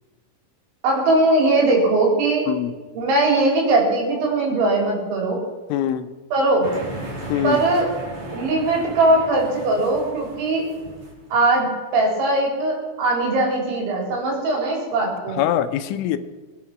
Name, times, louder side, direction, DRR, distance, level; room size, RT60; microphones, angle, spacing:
voice 1, 0.8-2.5 3.0-5.4 6.3-6.7 7.4-7.9 8.3-10.7 11.3-15.4, right 2 dB, 70° right, 0 dB, 6.3 m, -20 dB
voice 2, 5.7-6.1 7.3-7.6 15.4-16.2, left 11 dB, 80° left, 10 dB, 3.2 m, -23 dB
sound 1, 6.6-11.4, right 2 dB, 40° right, 5.0 m, -35 dB
22.5 x 10.5 x 6.1 m, 1.3 s
omnidirectional pair, 5.7 m